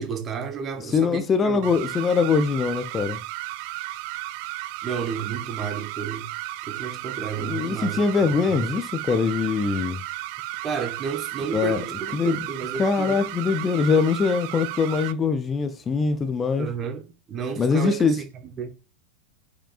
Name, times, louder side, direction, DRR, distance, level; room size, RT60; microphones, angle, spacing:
voice 1, 0.0-1.8 4.8-6.3 6.6-8.0 8.5-8.7 10.6-13.2 16.6-18.7, right 6 dB, 25° right, 1.2 m, -32 dB
voice 2, 0.9-3.2 7.4-10.0 11.5-11.8 12.1-12.4 12.8-16.7 17.6-18.2, left 5 dB, 20° left, 0.6 m, -22 dB
sound 1, 1.6-15.1, right 17 dB, 45° right, 0.4 m, -34 dB
8.7 x 5.0 x 2.4 m
figure-of-eight pair, 90°, 0 cm